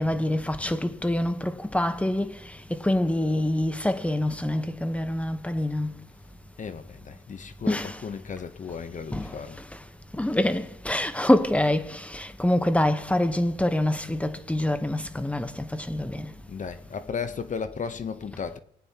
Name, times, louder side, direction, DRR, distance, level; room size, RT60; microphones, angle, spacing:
voice 1, 0.0-2.4 2.7-5.9 7.7-8.0 9.1-9.3 10.1-16.3, left 1 dB, 5° left, 1.0 m, -25 dB
voice 2, 6.6-9.6 16.5-18.6, left 6 dB, 40° left, 0.8 m, -35 dB
20.0 x 9.1 x 2.9 m
cardioid pair, 90°, 20 cm